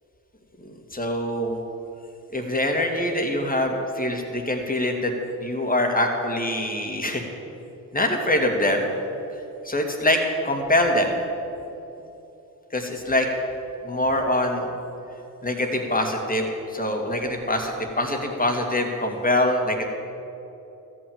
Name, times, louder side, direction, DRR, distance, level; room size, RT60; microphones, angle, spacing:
voice 1, 0.6-1.6 2.3-5.1 5.4-7.3 7.9-8.9 9.6-11.2 12.7-13.3 13.8-14.7 15.4-19.9, left 1 dB, 20° left, 3 dB, 2.4 m, -24 dB
13.5 x 6.3 x 8.9 m, 2.9 s
hypercardioid pair, 50°, 40 cm